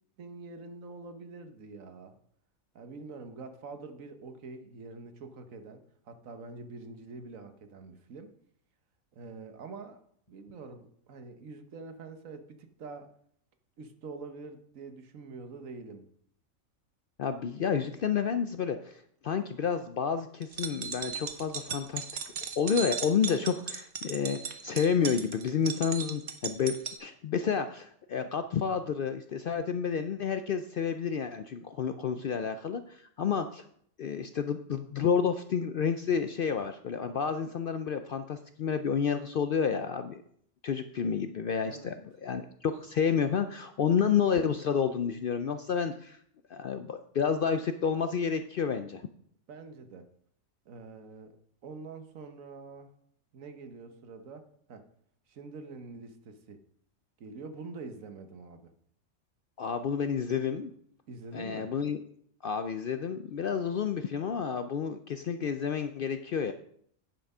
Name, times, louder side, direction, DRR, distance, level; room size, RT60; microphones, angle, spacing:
voice 1, 0.2-2.1 2.7-8.3 9.1-10.0 10.3-13.1 13.8-16.0 22.2-22.4 41.6-42.0 49.5-50.1 50.7-51.4 51.6-52.9 53.3-54.9 55.3-56.6 57.2-58.7 61.1-61.7, right 4 dB, 75° right, 8 dB, 1.4 m, -45 dB
voice 2, 17.2-22.0 22.6-33.6 34.0-40.2 40.6-41.9 42.2-46.2 46.5-49.0 59.6-60.7 61.3-62.0 62.4-66.5, left 7 dB, 65° left, 9 dB, 0.5 m, -30 dB
sound 1, 20.4-27.0, right 6 dB, 60° right, 1.2 m, -37 dB
10.0 x 5.9 x 5.4 m, 0.65 s
omnidirectional pair, 1.4 m